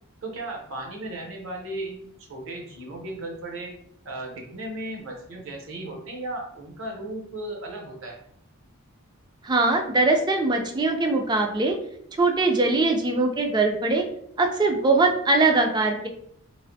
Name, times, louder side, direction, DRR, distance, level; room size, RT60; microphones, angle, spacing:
voice 1, 0.2-3.7 4.0-8.2, right 1 dB, 60° right, 1 dB, 0.7 m, -36 dB
voice 2, 9.4-11.8 12.2-14.0 14.4-16.1, right 3 dB, 20° right, 3 dB, 0.3 m, -21 dB
3.2 x 2.5 x 2.6 m, 0.71 s
head